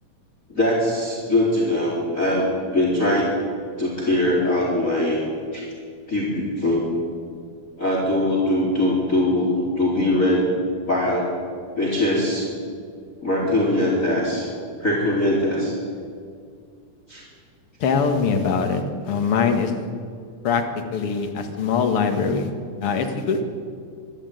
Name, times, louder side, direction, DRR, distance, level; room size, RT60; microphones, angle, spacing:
voice 1, 0.5-3.3 3.8-5.2 5.5-5.6 6.1-6.8 7.8-10.4 10.9-11.3 11.7-12.5 13.2-14.5 14.8-15.7 17.1-17.2, left 1 dB, 20° left, -3 dB, 4.0 m, -21 dB
voice 2, 17.8-19.7 20.4-20.6 20.9-22.5 22.8-23.4, left 5 dB, 45° left, 5 dB, 2.2 m, -22 dB
24.0 x 12.5 x 9.3 m, 2.2 s
omnidirectional pair, 4.3 m